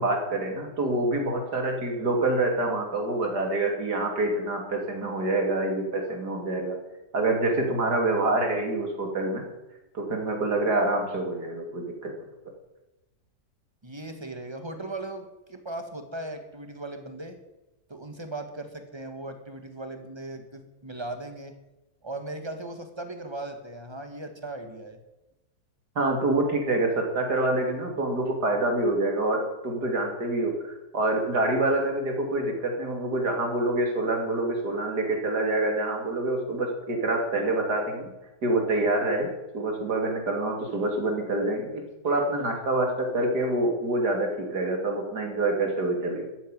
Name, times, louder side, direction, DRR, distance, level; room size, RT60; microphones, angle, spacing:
voice 1, 0.0-6.8 7.1-9.4 9.9-12.1 26.0-38.1 38.4-46.3, right 2 dB, 75° right, 2 dB, 3.6 m, -26 dB
voice 2, 13.8-17.4 17.9-21.5 22.0-25.0, right 2 dB, 15° right, 7 dB, 1.8 m, -38 dB
13.5 x 9.3 x 9.2 m, 1.0 s
omnidirectional pair, 1.8 m